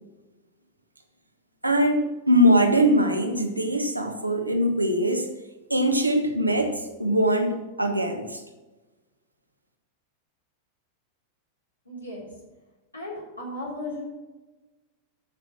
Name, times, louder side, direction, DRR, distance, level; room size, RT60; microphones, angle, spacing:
voice 1, 1.6-5.3 5.7-8.4, equal, 85° right, 4 dB, 1.4 m, -22 dB
voice 2, 11.9-12.3 12.9-14.0, left 1 dB, 85° left, -4 dB, 4.0 m, -35 dB
13.5 x 6.2 x 6.0 m, 1.2 s
figure-of-eight pair, 90°, 0 cm